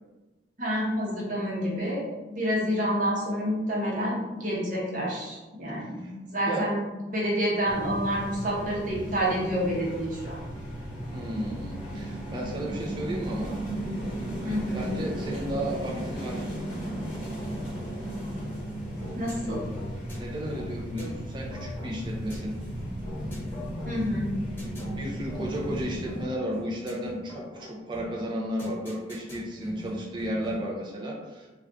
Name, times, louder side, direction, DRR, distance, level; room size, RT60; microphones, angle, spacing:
voice 1, 0.6-6.8 7.1-10.4 14.4-14.9 19.1-19.6 23.9-24.3, equal, 45° right, -5 dB, 0.8 m, -28 dB
sound 1, 7.7-26.2, right 1 dB, 45° left, 1.1 m, -35 dB
voice 2, 11.1-13.6 14.7-16.5 20.2-22.6 25.0-31.5, equal, 25° right, -3 dB, 0.4 m, -33 dB
sound 2, 19.0-30.8, left 1 dB, 15° left, 1.0 m, -43 dB
2.6 x 2.3 x 3.4 m, 1.1 s
head